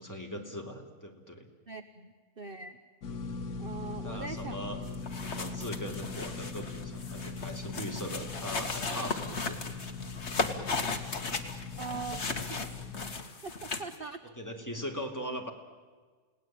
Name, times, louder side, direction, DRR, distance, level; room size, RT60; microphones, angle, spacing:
voice 1, 0.0-1.5 4.0-4.8 5.1-9.6 14.4-15.5, equal, 10° left, 1 dB, 3.2 m, -40 dB
voice 2, 1.7-2.8 3.6-4.6 11.7-12.2 12.5-12.6 13.4-14.2, right 5 dB, 40° right, 9 dB, 1.1 m, -41 dB
sound 1, 3.0-13.1, left 4 dB, 70° left, 1.9 m, -40 dB
sound 2, 4.9-14.0, left 3 dB, 45° left, 2.1 m, -36 dB
30.0 x 18.0 x 9.1 m, 1.5 s
omnidirectional pair, 1.7 m